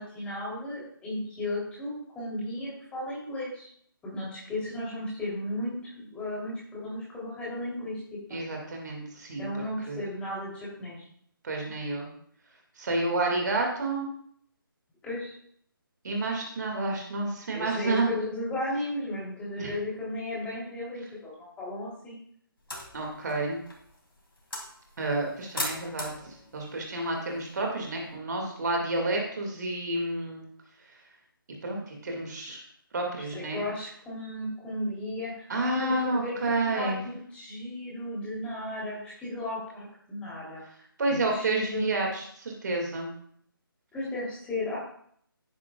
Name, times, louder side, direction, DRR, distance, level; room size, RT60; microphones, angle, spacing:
voice 1, 0.0-3.7 4.0-8.4 9.4-11.0 15.0-15.3 17.5-22.2 33.3-40.6 41.1-41.9 43.9-44.8, left 1 dB, 10° left, -7 dB, 3.2 m, -35 dB
voice 2, 8.3-10.0 11.4-12.1 12.8-14.1 16.0-18.1 19.6-19.7 22.9-23.6 25.0-30.5 31.6-32.6 32.9-33.6 35.5-37.0 41.0-43.1, right 2 dB, 50° right, 1 dB, 2.1 m, -30 dB
sound 1, 22.6-28.1, left 1 dB, 75° left, 3.1 m, -41 dB
11.0 x 9.6 x 2.4 m, 0.64 s
figure-of-eight pair, 150°, 12 cm